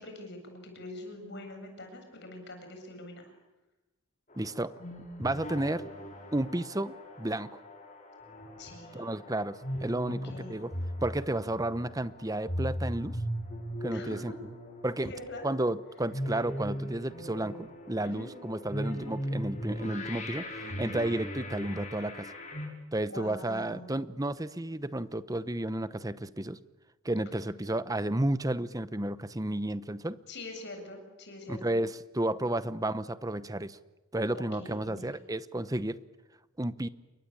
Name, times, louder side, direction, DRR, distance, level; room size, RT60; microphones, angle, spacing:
voice 1, 0.0-3.3 8.6-9.1 10.0-10.5 13.9-14.4 15.0-15.5 18.0-18.3 20.8-21.0 23.1-23.9 30.3-31.8 32.3-32.6 34.3-35.1, left 1 dB, 50° left, 5 dB, 7.6 m, -44 dB
sound 1, 4.3-22.7, equal, 35° left, 6.2 m, -39 dB
voice 2, 4.4-4.7 5.2-5.8 6.3-7.6 8.9-10.2 10.5-10.7 11.0-13.2 13.8-14.3 14.8-15.1 15.4-22.3 22.9-26.6 27.0-30.2 31.5-33.8 34.1-36.0 36.6-36.9, right 1 dB, 15° right, 14 dB, 0.9 m, -32 dB
29.0 x 23.0 x 8.7 m, 1.1 s
head